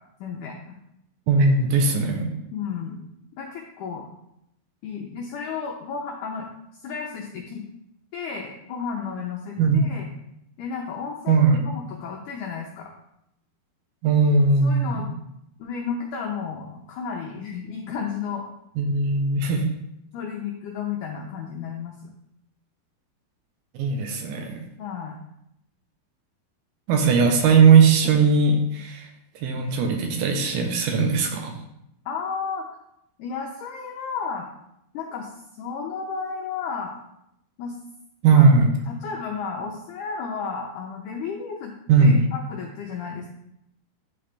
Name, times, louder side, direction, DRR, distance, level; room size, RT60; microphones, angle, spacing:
voice 1, 0.2-0.7 2.5-3.0 3.4-4.1 4.8-6.5 6.8-7.6 8.1-10.1 10.6-12.9 14.6-15.1 15.6-18.5 20.1-21.9 24.8-25.2 32.0-32.6 33.2-34.5 34.9-36.9 37.6-37.8 38.3-38.5 38.9-41.7 42.0-43.3, left 6 dB, 85° left, 0 dB, 1.8 m, -33 dB
voice 2, 1.3-2.3 9.6-9.9 11.3-11.6 14.0-15.1 18.8-19.7 23.7-24.6 26.9-29.1 29.4-31.6 38.2-38.7 41.9-42.2, right 4 dB, 80° right, 4 dB, 2.7 m, -18 dB
10.5 x 3.9 x 3.3 m, 0.79 s
omnidirectional pair, 4.4 m